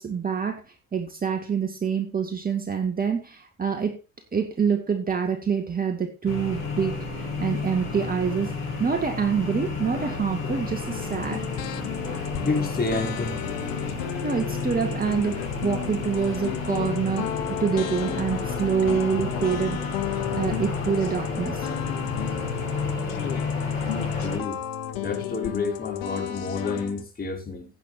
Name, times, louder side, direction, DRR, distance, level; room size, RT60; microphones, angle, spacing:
voice 1, 0.0-4.0 4.3-8.5 8.8-11.5 14.2-19.8 20.3-21.7, right 6 dB, 20° right, 2.1 m, -26 dB
sound 1, 6.3-24.4, left 4 dB, 80° left, 4.8 m, -31 dB
sound 2, 10.9-27.0, left 11 dB, 60° left, 1.6 m, -34 dB
voice 2, 12.4-13.4 23.9-24.6 25.0-27.7, left 3 dB, 25° left, 5.2 m, -29 dB
16.5 x 8.6 x 2.7 m
hypercardioid pair, 70°, 38 cm